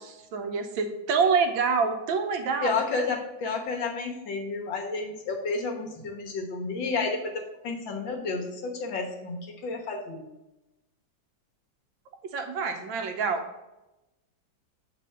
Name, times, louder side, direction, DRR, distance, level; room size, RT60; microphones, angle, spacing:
voice 1, 0.3-2.7 12.3-13.5, right 5 dB, 80° right, 6 dB, 1.4 m, -26 dB
voice 2, 2.6-10.2, left 4 dB, 75° left, 1 dB, 1.9 m, -31 dB
7.7 x 4.2 x 5.3 m, 0.97 s
omnidirectional pair, 2.1 m